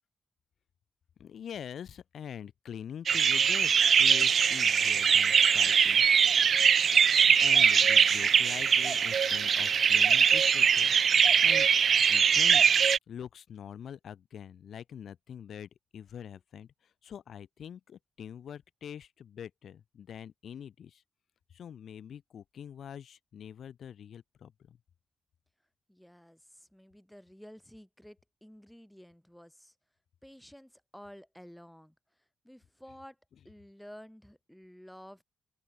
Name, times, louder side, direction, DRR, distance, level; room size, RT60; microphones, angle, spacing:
voice 1, 1.2-6.1 7.0-10.9 11.4-11.7 12.1-12.6 13.1-16.7 17.0-21.0 21.5-24.8, left 8 dB, 65° left, 4.3 m, -44 dB
sound 1, 3.1-13.0, right 7 dB, 50° right, 0.3 m, -22 dB
voice 2, 25.9-29.7 30.2-32.0 32.4-33.2 33.4-35.2, equal, ahead, 3.6 m, -52 dB
open air
wide cardioid pair, 175°, 0 cm